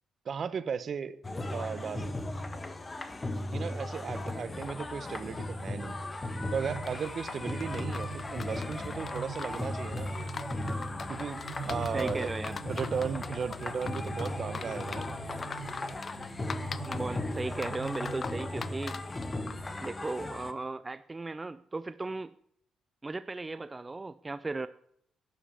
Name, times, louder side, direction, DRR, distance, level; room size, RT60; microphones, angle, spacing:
voice 1, 0.2-1.2 1.5-2.1 3.5-6.0 6.5-10.1 11.1-11.4 11.7-12.3 12.6-15.1, right 6 dB, 50° right, 15 dB, 1.1 m, -36 dB
sound 1, 1.2-20.5, left 2 dB, 25° left, 1.4 m, -37 dB
sound 2, 6.2-18.5, right 3 dB, 75° left, 6.9 m, -44 dB
sound 3, 6.8-19.7, left 5 dB, 40° left, 0.8 m, -43 dB
voice 2, 11.9-12.6 16.1-16.2 16.8-19.0 19.8-22.3 23.0-24.7, right 3 dB, 20° right, 14 dB, 0.5 m, -36 dB
12.5 x 10.5 x 7.0 m, 0.70 s
cardioid pair, 90°, 0 cm